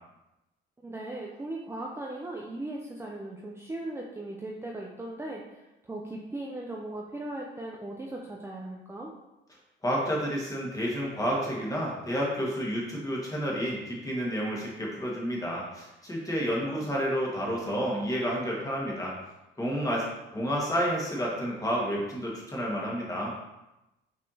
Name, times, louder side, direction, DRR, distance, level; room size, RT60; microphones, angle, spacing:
voice 1, 0.8-5.4 5.8-9.1 16.6-16.9, right 1 dB, 10° right, -2 dB, 0.5 m, -38 dB
voice 2, 9.8-19.1 19.6-20.0 20.3-23.3, equal, 15° left, -4 dB, 1.5 m, -30 dB
5.3 x 3.4 x 2.8 m, 0.95 s
cardioid pair, 90°, 20 cm